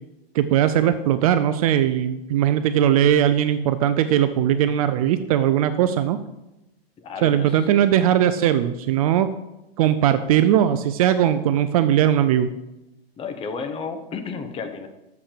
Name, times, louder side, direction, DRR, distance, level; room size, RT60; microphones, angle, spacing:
voice 1, 0.3-6.2 7.2-9.3 9.8-12.5, right 10 dB, 35° right, 11 dB, 0.4 m, -19 dB
voice 2, 7.0-7.6 13.2-14.9, left 5 dB, 20° left, 7 dB, 0.9 m, -32 dB
7.2 x 5.9 x 6.7 m, 0.94 s
hypercardioid pair, 135°, 31 cm